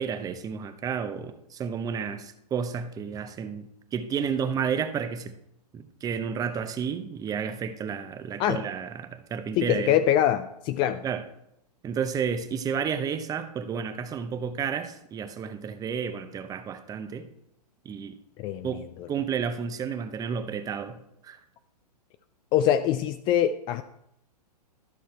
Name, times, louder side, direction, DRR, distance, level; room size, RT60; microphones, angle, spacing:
voice 1, 0.0-5.3 5.7-10.0 11.0-11.2 11.8-17.3 17.8-18.2 18.6-18.8 19.1-21.0 21.2-21.4, right 7 dB, 15° right, 10 dB, 0.7 m, -31 dB
voice 2, 9.6-11.0 18.4-18.7 22.5-23.8, left 11 dB, 25° left, 11 dB, 0.3 m, -23 dB
13.0 x 6.4 x 4.4 m, 0.80 s
hypercardioid pair, 120°, 21 cm